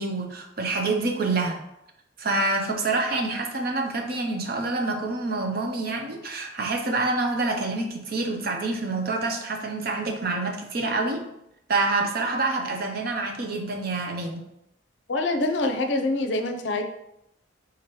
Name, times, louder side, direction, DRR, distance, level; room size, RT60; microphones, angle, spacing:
voice 1, 0.0-1.6 2.2-11.2 11.7-14.4, right 3 dB, 50° right, 3 dB, 0.6 m, -27 dB
voice 2, 15.1-16.8, left 2 dB, 65° left, 5 dB, 0.5 m, -25 dB
3.8 x 2.9 x 4.5 m, 0.83 s
head